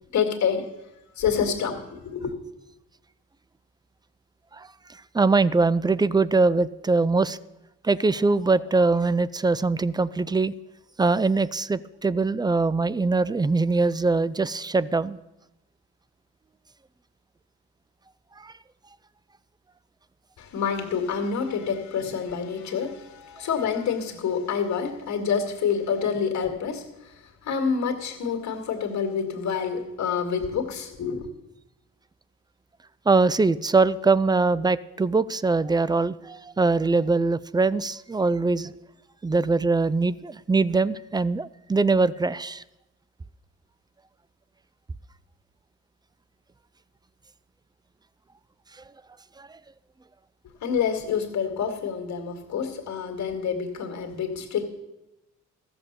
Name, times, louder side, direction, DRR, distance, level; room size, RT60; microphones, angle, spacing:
voice 1, 0.1-0.7 1.2-2.3 20.4-31.3 50.6-54.7, left 6 dB, 60° left, 3 dB, 2.1 m, -27 dB
voice 2, 5.1-7.4 7.8-10.5 11.0-15.2 18.4-18.5 33.1-38.7 39.2-42.6 49.4-49.5, right 3 dB, 15° right, 18 dB, 0.4 m, -22 dB
14.5 x 7.0 x 6.8 m, 0.95 s
cardioid pair, 75°, 32 cm